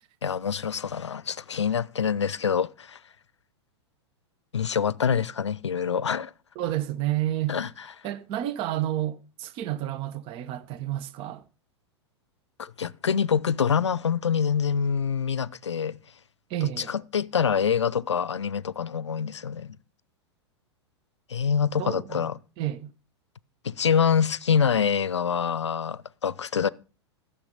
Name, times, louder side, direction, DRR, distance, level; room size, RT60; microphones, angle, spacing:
voice 1, 0.2-3.0 4.5-6.3 7.5-7.7 12.6-16.0 16.8-19.8 21.3-22.4 23.6-26.7, left 7 dB, 80° left, 0.6 m, -25 dB
voice 2, 6.5-7.6 8.0-11.4 16.5-16.9 21.8-22.3 22.6-22.9, right 13 dB, 40° right, 1.0 m, -30 dB
14.5 x 6.9 x 5.6 m
figure-of-eight pair, 95°, 15 cm